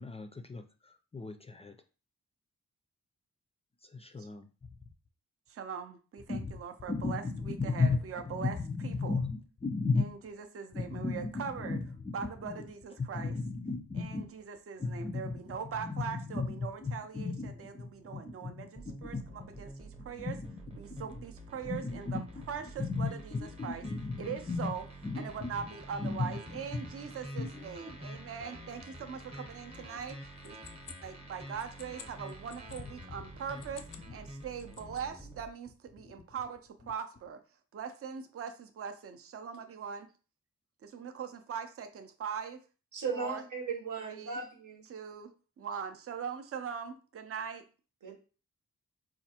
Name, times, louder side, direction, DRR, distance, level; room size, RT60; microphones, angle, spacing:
voice 1, 0.0-1.8 3.8-4.8 6.3-6.6 6.9-10.0 10.7-12.7 13.0-14.3 14.8-19.6 19.9-20.6 20.9-21.2 21.6-22.5 22.8-24.7 25.0-25.5 26.0-26.4 26.7-27.5 36.8-36.9, left 3 dB, 20° left, 0.3 m, -36 dB
voice 2, 5.5-9.2 9.9-11.8 12.1-13.4 13.9-20.4 20.8-23.9 24.2-24.9 25.1-30.2 30.4-30.6 31.0-37.4 37.7-40.1 40.8-42.6 43.1-43.4 44.0-44.4 44.8-45.3 45.6-47.6, right 7 dB, 50° right, 0.5 m, -41 dB
sound 1, 18.7-35.5, right 1 dB, 20° right, 0.8 m, -48 dB
sound 2, 30.0-32.8 33.5-34.1 34.4-35.2, left 8 dB, 85° left, 0.5 m, -52 dB
voice 3, 42.9-44.8 48.0-48.1, right 5 dB, 80° right, 1.0 m, -37 dB
4.3 x 2.4 x 2.8 m
cardioid pair, 85°, 30 cm